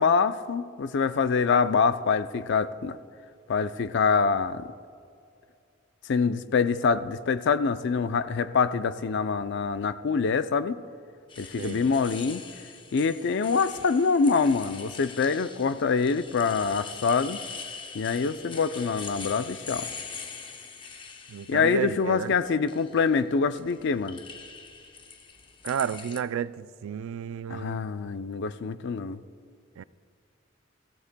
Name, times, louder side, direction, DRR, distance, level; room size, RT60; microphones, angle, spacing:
voice 1, 0.0-3.0 3.5-4.7 6.1-10.8 11.4-12.4 12.9-17.4 17.9-19.9 21.5-24.2 27.5-29.2, left 5 dB, 60° left, 0.4 m, -25 dB
sound 1, 11.3-21.9 22.4-23.0 23.6-26.2, left 5 dB, 25° left, 0.7 m, -42 dB
voice 2, 11.6-11.9 21.3-22.3 25.6-27.8 29.8-29.9, right 8 dB, 85° right, 0.3 m, -32 dB
21.5 x 15.5 x 2.2 m
head